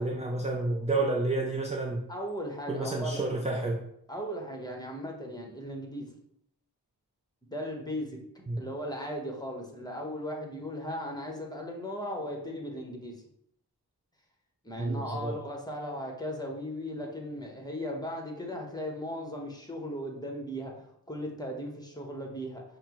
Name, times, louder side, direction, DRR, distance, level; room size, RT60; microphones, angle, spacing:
voice 1, 0.0-2.0 2.7-3.8 8.5-8.6 14.8-15.3, right 2 dB, 15° right, 1 dB, 0.4 m, -30 dB
voice 2, 2.1-3.3 4.1-6.1 7.4-13.2 14.6-22.6, equal, 10° left, 1 dB, 1.0 m, -37 dB
5.8 x 2.1 x 3.0 m, 0.72 s
cardioid pair, 45°, 41 cm